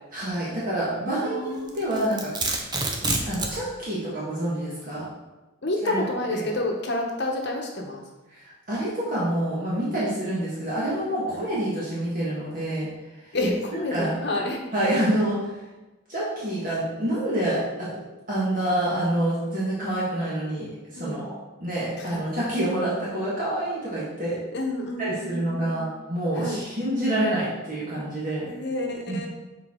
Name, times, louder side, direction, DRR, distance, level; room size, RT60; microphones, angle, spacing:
voice 1, 0.1-2.3 3.0-5.0 5.8-6.0 6.3-6.5 8.3-12.9 13.7-14.1 14.7-15.5 16.1-17.9 18.3-21.3 21.6-24.4 25.0-28.5 29.1-29.3, right 1 dB, 40° right, -8 dB, 1.6 m, -27 dB
voice 2, 1.1-2.1 5.6-8.0 11.3-11.4 13.3-14.6 20.9-21.2 22.0-22.1 24.5-25.9 26.4-26.6 28.5-29.3, left 1 dB, 55° left, 1 dB, 1.0 m, -29 dB
Domestic sounds home sounds, 1.7-3.6, right 3 dB, 20° right, 0.6 m, -27 dB
7.0 x 4.5 x 3.7 m, 1.1 s
head